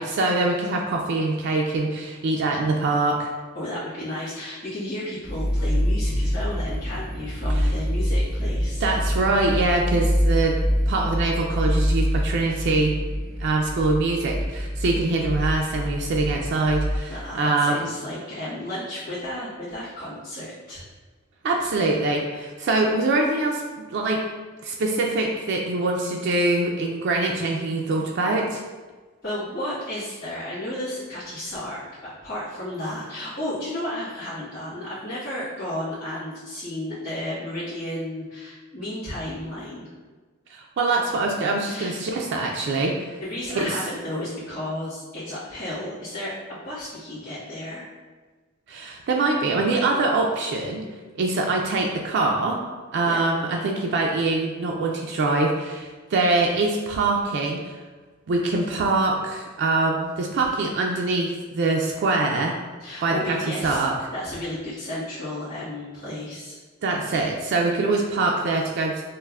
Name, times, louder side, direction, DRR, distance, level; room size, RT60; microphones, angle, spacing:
voice 1, 0.0-3.3 7.6-7.7 8.8-10.6 10.9-12.9 13.4-17.8 21.4-23.6 23.9-24.2 24.6-28.6 40.5-43.2 43.5-43.8 48.7-50.8 51.2-52.6 52.9-57.8 58.3-62.5 63.0-63.9 66.8-69.0, right 3 dB, 55° right, 0 dB, 0.3 m, -24 dB
voice 2, 3.5-8.8 17.1-20.8 29.2-39.9 41.6-42.0 43.2-47.9 53.1-53.2 62.8-63.8 64.1-66.6, left 1 dB, 40° left, -14 dB, 1.4 m, -33 dB
sound 1, 5.2-17.0, equal, ahead, 0.5 m, -25 dB
5.4 x 2.0 x 2.3 m, 1.3 s
head